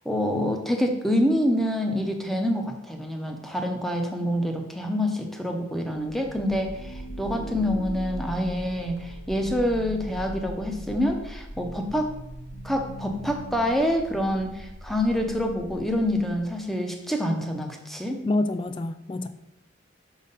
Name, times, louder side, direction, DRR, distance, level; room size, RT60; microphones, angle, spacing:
voice 1, 0.0-12.1 12.6-18.2, equal, ahead, 3 dB, 0.7 m, -26 dB
sound 1, 6.0-16.6, right 1 dB, 55° left, 1.4 m, -39 dB
voice 2, 18.2-19.3, left 2 dB, 25° left, 11 dB, 0.3 m, -27 dB
6.3 x 4.0 x 5.3 m, 0.87 s
head